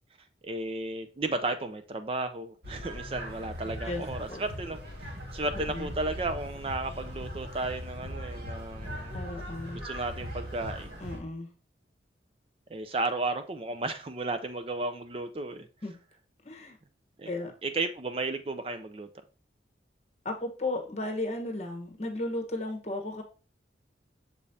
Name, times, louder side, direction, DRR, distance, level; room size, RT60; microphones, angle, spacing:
voice 1, 0.4-9.2 9.8-11.0 12.7-15.7 17.2-17.3 17.6-19.1, right 2 dB, 30° right, 0.4 m, -34 dB
sound 1, 2.6-11.2, equal, 60° right, 2.0 m, -39 dB
voice 2, 9.1-9.8 11.0-11.5 15.8-15.9 16.4-16.8 17.3-17.5 20.2-23.2, left 2 dB, 35° left, 1.2 m, -34 dB
6.7 x 5.1 x 2.7 m
head